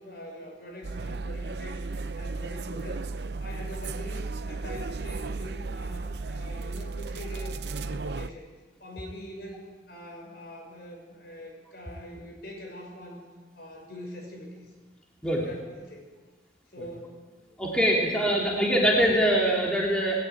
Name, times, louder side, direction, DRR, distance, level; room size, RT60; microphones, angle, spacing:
voice 1, 0.0-1.8 2.2-3.0 3.4-8.5 8.8-9.6 9.9-13.2 13.5-14.7 15.3-16.1 16.7-17.1 17.5-17.6, equal, 55° left, 1 dB, 6.2 m, -43 dB
sound 1, 0.8-8.3, right 3 dB, 65° right, 0.6 m, -34 dB
voice 2, 17.6-20.2, equal, 5° left, -3 dB, 3.0 m, -23 dB
20.0 x 17.5 x 9.3 m, 1.4 s
head